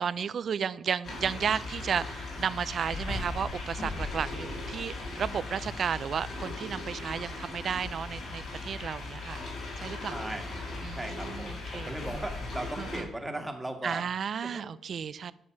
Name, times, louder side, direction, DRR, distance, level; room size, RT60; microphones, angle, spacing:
voice 1, 0.0-9.4 9.8-10.4 10.8-11.9 12.8-13.0 13.8-15.3, right 7 dB, 55° right, 18 dB, 0.4 m, -33 dB
sound 1, 1.0-13.0, left 2 dB, 70° left, 4.2 m, -38 dB
voice 2, 10.1-10.6 10.9-14.1 14.4-14.7, right 1 dB, 10° right, 4 dB, 1.6 m, -38 dB
10.0 x 6.4 x 4.7 m, 0.77 s
cardioid pair, 90°, 0 cm